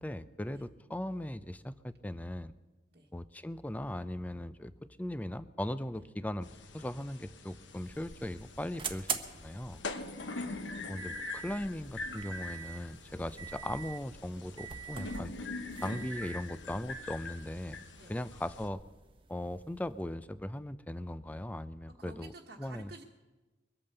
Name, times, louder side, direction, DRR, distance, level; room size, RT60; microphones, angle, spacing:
voice 1, 0.0-2.5 3.1-4.7 5.0-6.5 6.7-9.8 10.9-15.3 15.8-17.8 18.1-18.8 19.3-22.3 22.6-22.9, left 1 dB, 10° left, 14 dB, 0.4 m, -38 dB
sound 1, 6.4-18.7, left 3 dB, 80° left, 1.2 m, -44 dB
sound 2, 7.6-20.0, right 6 dB, 30° right, 1.0 m, -45 dB
voice 2, 9.9-10.4 13.2-13.3 18.0-18.3 22.0-23.0, right 2 dB, 55° right, 1 dB, 1.3 m, -52 dB
23.0 x 8.8 x 6.8 m, 1.2 s
head